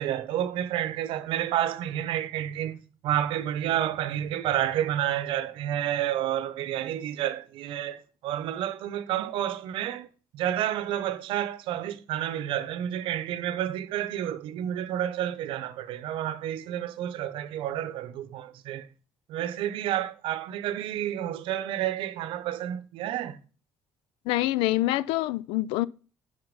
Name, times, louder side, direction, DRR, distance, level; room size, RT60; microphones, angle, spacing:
voice 1, 0.0-10.1 10.3-18.9 19.3-23.4, right 11 dB, 75° right, 0.8 m, -30 dB
voice 2, 24.3-25.9, left 16 dB, 85° left, 0.3 m, -26 dB
7.9 x 5.6 x 5.2 m
supercardioid pair, 75°, 9 cm